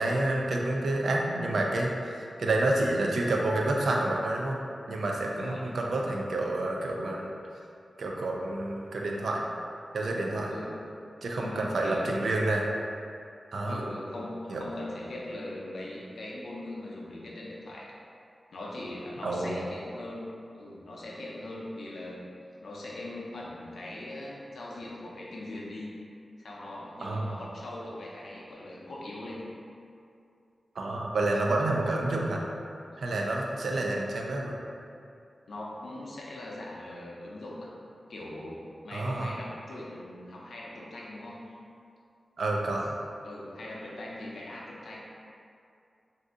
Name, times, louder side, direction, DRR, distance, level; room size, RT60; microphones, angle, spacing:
voice 1, 0.0-4.6 4.9-7.3 8.0-9.4 9.9-10.5 11.2-12.7 13.5-13.8 14.5-14.6 19.2-19.7 27.0-27.3 30.8-32.4 33.0-34.6 38.9-39.3 42.4-42.9, right 2 dB, 85° right, 0 dB, 0.4 m, -29 dB
voice 2, 5.3-5.9 10.5-10.8 11.4-12.1 13.7-17.9 18.5-20.3 20.5-22.2 22.6-25.9 26.4-29.5 35.5-37.7 38.1-41.6 43.2-45.0, left 1 dB, 90° left, -4 dB, 0.5 m, -40 dB
2.6 x 2.5 x 3.6 m, 2.5 s
wide cardioid pair, 115°, 0 cm